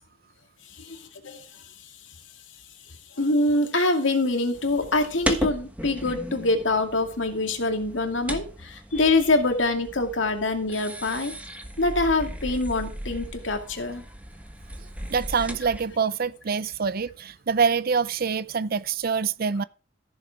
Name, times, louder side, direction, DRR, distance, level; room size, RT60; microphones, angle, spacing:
voice 1, 0.8-1.4 3.2-11.3 11.8-14.0, left 2 dB, 70° left, 2.3 m, -25 dB
sound 1, 4.5-16.0, right 1 dB, 5° right, 1.3 m, -36 dB
voice 2, 15.1-19.6, right 5 dB, 50° right, 0.5 m, -25 dB
14.5 x 6.8 x 4.8 m
head